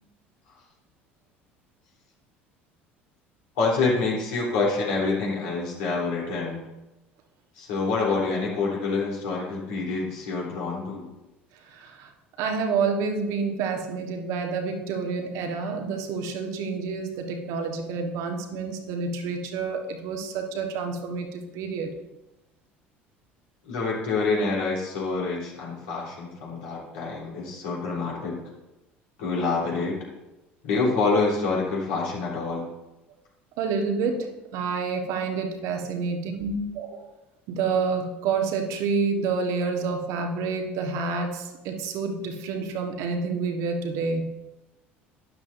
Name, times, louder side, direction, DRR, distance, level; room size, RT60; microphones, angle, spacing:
voice 1, 3.6-6.6 7.6-11.1 23.7-28.4 29.2-30.0 30.6-32.7, left 3 dB, 65° left, -4 dB, 3.5 m, -27 dB
voice 2, 11.6-12.1 12.4-21.9 33.6-37.1 37.5-44.3, right 4 dB, 55° right, 3 dB, 1.4 m, -28 dB
12.0 x 10.5 x 2.7 m, 1.0 s
figure-of-eight pair, 65°, 6 cm